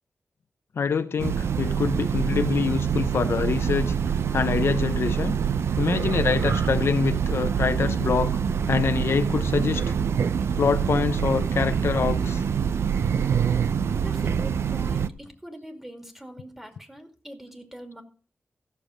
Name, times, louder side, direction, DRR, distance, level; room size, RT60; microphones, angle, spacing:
voice 1, 0.8-3.9 4.3-5.4 5.8-8.4 8.7-9.8 10.6-12.4, left 6 dB, 75° left, 0.6 m, -25 dB
Train, 1.2-15.1, right 7 dB, 85° right, 0.5 m, -25 dB
voice 2, 14.0-18.0, equal, 10° right, 2.3 m, -43 dB
14.5 x 6.9 x 5.0 m
wide cardioid pair, 85°, 4 cm